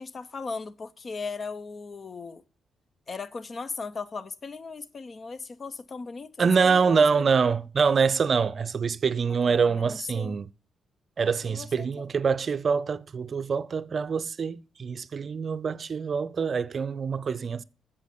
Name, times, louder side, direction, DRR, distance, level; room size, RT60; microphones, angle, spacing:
voice 1, 0.0-2.4 3.1-7.3 9.5-10.4 11.4-11.9, left 4 dB, 45° left, 0.7 m, -38 dB
voice 2, 6.4-10.5 11.2-17.6, right 5 dB, 50° right, 0.4 m, -25 dB
8.1 x 6.9 x 6.7 m
hypercardioid pair, 50°, 0 cm